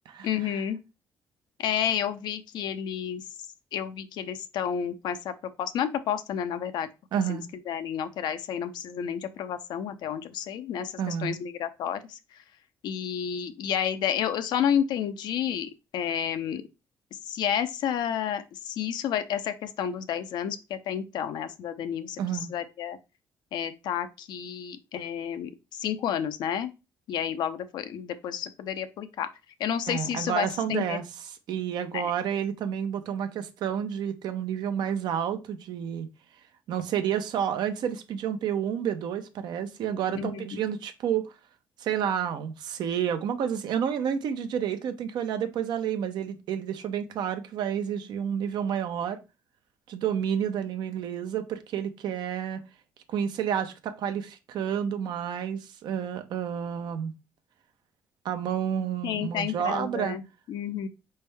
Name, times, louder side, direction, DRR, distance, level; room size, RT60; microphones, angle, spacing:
voice 1, 0.2-0.8 1.6-3.2 3.7-5.3 5.6-6.9 7.3-12.2 12.8-16.6 17.1-23.0 23.5-26.7 27.1-29.3 29.6-31.0 31.9-32.0 40.1-40.6 59.0-60.2 60.5-60.9, left 9 dB, 75° left, 0.6 m, -30 dB
voice 2, 7.1-7.5 11.0-11.4 22.2-22.5 29.9-31.0 31.5-36.1 36.7-41.3 41.8-49.2 49.9-52.6 53.1-57.1 58.2-60.2, right 8 dB, 75° right, 0.7 m, -30 dB
4.3 x 3.4 x 3.4 m
supercardioid pair, 70°, 7 cm